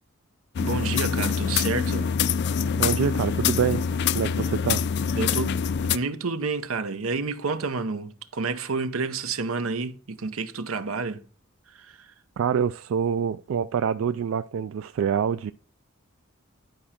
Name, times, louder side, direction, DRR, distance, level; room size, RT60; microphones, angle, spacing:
sound 1, 0.6-6.0, left 6 dB, 55° left, 0.3 m, -25 dB
voice 1, 0.6-2.1 5.2-5.6 5.9-11.2 11.7-12.1, right 4 dB, 90° right, 0.8 m, -29 dB
voice 2, 2.7-3.9 4.1-4.8 12.4-15.5, right 7 dB, 70° right, 0.3 m, -26 dB
10.5 x 4.9 x 4.3 m
head